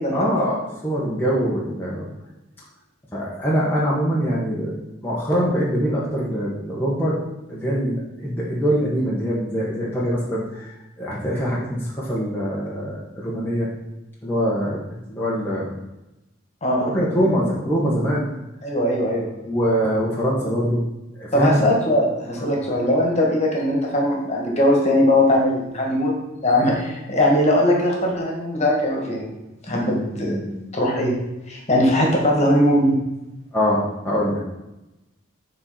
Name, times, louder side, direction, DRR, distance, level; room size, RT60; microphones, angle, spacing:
voice 1, 0.1-2.1 3.1-4.7 5.0-7.2 7.5-10.7 11.0-13.7 14.2-15.7 16.8-18.2 19.4-20.8 21.1-21.7 22.4-22.5 29.7-30.5 33.5-34.4, equal, 10° left, -7 dB, 1.3 m, -23 dB
voice 2, 16.6-16.9 18.6-19.3 21.3-29.2 29.7-30.4 30.7-31.2 31.5-33.0, left 1 dB, 35° left, -1 dB, 1.9 m, -20 dB
7.7 x 4.4 x 5.8 m, 0.96 s
head